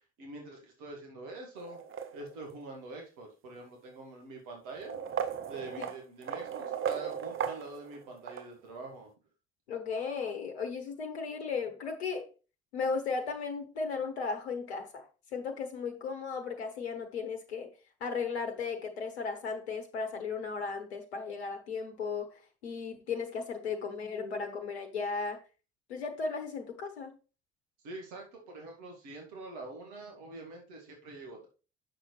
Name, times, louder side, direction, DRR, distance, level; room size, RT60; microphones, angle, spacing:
voice 1, 0.2-1.8 2.1-5.0 5.5-9.1 27.8-31.5, right 2 dB, 70° right, 2.2 m, -45 dB
sound 1, 1.6-2.6 3.6-3.7 4.7-8.5, right 8 dB, 40° right, 1.0 m, -37 dB
voice 2, 9.7-12.3 12.7-15.1 15.3-17.7 18.0-25.4 25.9-27.2, left 5 dB, 85° left, 1.0 m, -36 dB
7.6 x 6.4 x 3.2 m
figure-of-eight pair, 50°, 32 cm